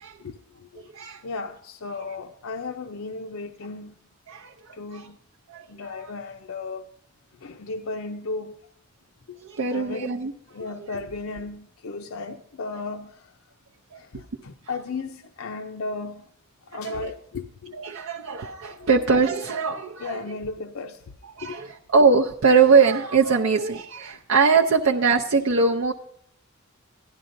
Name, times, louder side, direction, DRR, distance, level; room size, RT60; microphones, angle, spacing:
voice 1, 0.2-0.8 1.2-4.0 4.7-5.2 5.7-6.9 7.4-8.6 9.3-9.4 9.7-10.2 10.5-13.3 13.9-16.3 16.7-17.8 18.8-18.9 20.0-21.0 21.4-21.6, left 3 dB, 75° left, 0.6 m, -35 dB
voice 2, 4.3-4.7 5.5-5.7 5.9-6.0 9.5-10.3 13.9-14.0 16.8-17.1 17.8-20.2 21.4-25.9, right 5 dB, 70° right, 0.6 m, -21 dB
16.0 x 11.0 x 2.6 m
head